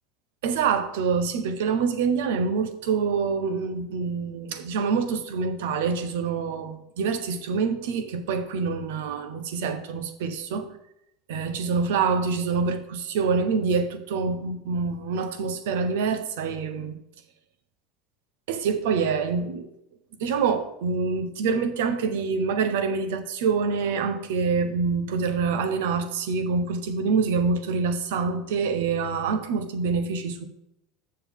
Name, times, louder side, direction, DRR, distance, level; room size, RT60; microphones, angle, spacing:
voice 1, 0.4-10.7 11.3-17.0 18.5-19.7 20.2-30.5, right 5 dB, 80° right, 0.9 m, -26 dB
7.3 x 6.7 x 3.7 m
supercardioid pair, 100°, 0 cm